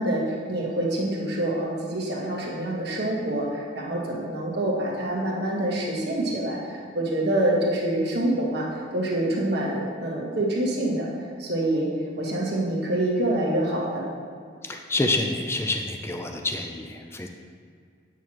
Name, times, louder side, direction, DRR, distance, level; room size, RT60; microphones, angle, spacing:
voice 1, 0.0-8.7 8.9-11.1 11.4-11.9 12.2-14.1, right 1 dB, 55° right, -3 dB, 1.4 m, -26 dB
voice 2, 14.6-17.3, left 2 dB, 15° left, 3 dB, 0.4 m, -28 dB
9.0 x 6.3 x 3.0 m, 2.2 s
head